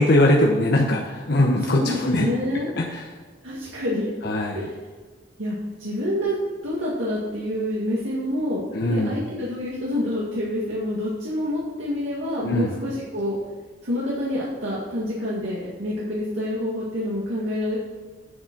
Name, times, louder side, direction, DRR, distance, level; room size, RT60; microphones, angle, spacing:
voice 1, 0.0-2.3 4.2-4.6 8.7-9.2 12.4-12.7, left 1 dB, 55° left, -2 dB, 0.9 m, -20 dB
voice 2, 1.6-2.7 3.4-4.1 4.5-4.7 5.4-6.4 6.6-13.4 13.8-17.8, left 1 dB, 80° right, -6 dB, 2.0 m, -27 dB
8.6 x 7.2 x 5.9 m, 1.5 s
head